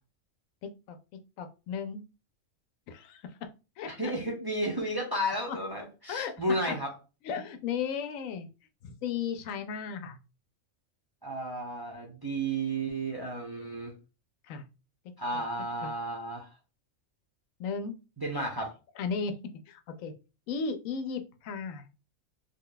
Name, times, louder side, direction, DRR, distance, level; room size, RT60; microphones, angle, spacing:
voice 1, 1.4-2.0 2.9-3.2 3.8-4.1 5.5-5.6 6.1-6.4 6.7-6.8 7.2-8.5 8.8-10.2 14.4-14.6 15.3-15.4 15.8-15.9 17.6-18.0 19.0-19.4 19.7-20.1 20.5-21.9, left 6 dB, 85° left, 8 dB, 1.0 m, -35 dB
voice 2, 3.8-6.9 11.2-13.9 15.2-16.5 18.2-18.7, right 1 dB, 25° right, -1 dB, 0.5 m, -32 dB
3.4 x 2.2 x 3.8 m, 0.31 s
omnidirectional pair, 1.4 m